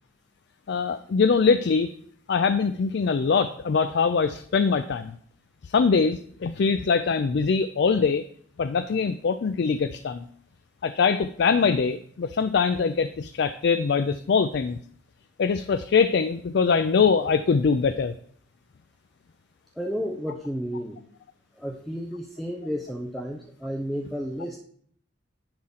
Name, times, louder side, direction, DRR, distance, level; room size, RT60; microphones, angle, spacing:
voice 1, 0.7-1.9 2.3-5.2 5.6-8.2 8.6-10.3 10.8-14.8 15.4-18.1, left 5 dB, 65° left, 11 dB, 0.4 m, -23 dB
voice 2, 19.8-21.0 21.6-24.6, equal, ahead, 1 dB, 0.6 m, -32 dB
10.5 x 3.8 x 5.7 m, 0.62 s
head